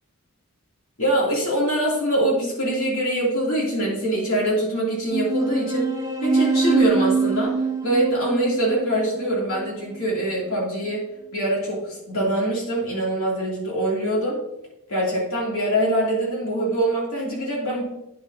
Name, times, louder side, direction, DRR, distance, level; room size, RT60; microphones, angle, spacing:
voice 1, 1.0-5.9 6.2-7.5 7.8-11.0 11.3-14.4 14.9-17.8, right 1 dB, 65° left, -4 dB, 2.9 m, -23 dB
sound 1, 5.1-10.1, right 4 dB, 15° right, 0.6 m, -24 dB
9.4 x 6.6 x 2.8 m, 0.88 s
head